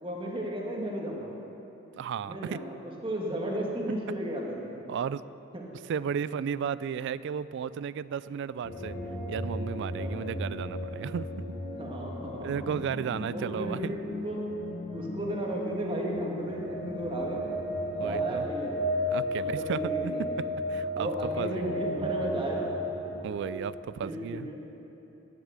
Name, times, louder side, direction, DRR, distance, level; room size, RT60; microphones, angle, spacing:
voice 1, 0.0-1.3 2.2-4.7 5.5-5.6 6.0-6.1 9.9-10.3 11.8-12.7 13.2-14.4 14.9-17.4 18.0-18.9 19.4-20.5 21.0-22.7 24.0-24.6, right 1 dB, 25° right, -1 dB, 1.6 m, -34 dB
voice 2, 2.0-2.6 4.9-5.2 5.9-9.0 9.3-11.4 12.4-13.9 18.0-18.5 19.0-21.1 21.4-21.7 23.2-24.5, right 7 dB, 60° right, 17 dB, 0.3 m, -34 dB
sound 1, 8.6-23.6, equal, 60° left, 1.9 m, -34 dB
10.5 x 7.4 x 8.2 m, 3.0 s
head